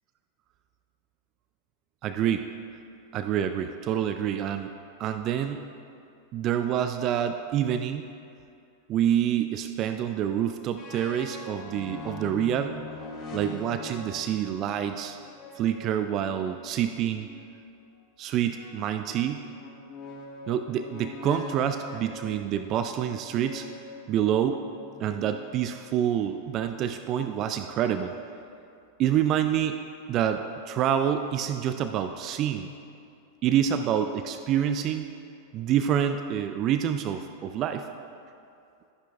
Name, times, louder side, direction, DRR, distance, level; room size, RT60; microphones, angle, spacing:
voice 1, 2.0-2.5 3.1-4.7 5.0-5.7 6.3-8.0 8.9-12.8 13.3-15.2 15.6-17.3 18.2-19.4 20.5-23.7 24.1-24.6 25.0-28.1 29.0-29.8 30.1-32.7 33.4-35.1 35.5-37.9, right 9 dB, 35° right, 8 dB, 0.3 m, -27 dB
sound 1, 10.8-17.5 18.6-25.9, left 4 dB, 30° left, 1.3 m, -43 dB
13.0 x 10.0 x 2.3 m, 2.5 s
figure-of-eight pair, 90°, 0 cm